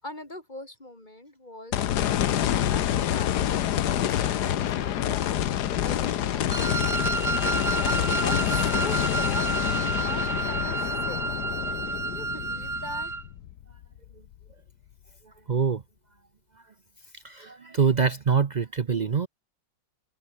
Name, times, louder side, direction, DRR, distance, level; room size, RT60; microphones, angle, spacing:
voice 1, 0.0-3.6 3.9-5.4 5.8-6.9 7.8-11.3 12.0-13.1, left 1 dB, 25° left, 5.0 m, -41 dB
sound 1, 1.7-14.0 14.5-14.6 17.9-18.0, left 11 dB, 65° left, 1.4 m, -27 dB
Wind instrument woodwind instrument, 6.5-13.2, right 4 dB, 35° right, 2.4 m, -30 dB
voice 2, 15.2-15.8 16.6-16.7 17.1-19.3, right 6 dB, 80° right, 0.4 m, -25 dB
omnidirectional pair, 2.0 m